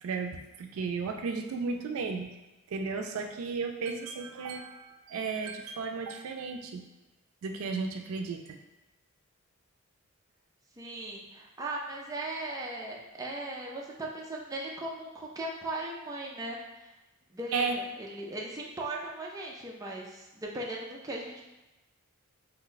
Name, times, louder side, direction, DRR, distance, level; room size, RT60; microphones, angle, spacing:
voice 1, 0.0-2.3 2.7-6.8 7.4-8.6 17.5-17.8, right 4 dB, 80° right, 4 dB, 0.4 m, -34 dB
voice 2, 10.8-16.9 17.3-21.4, right 2 dB, 15° right, -2 dB, 0.4 m, -38 dB
2.9 x 2.2 x 3.9 m, 1.1 s
head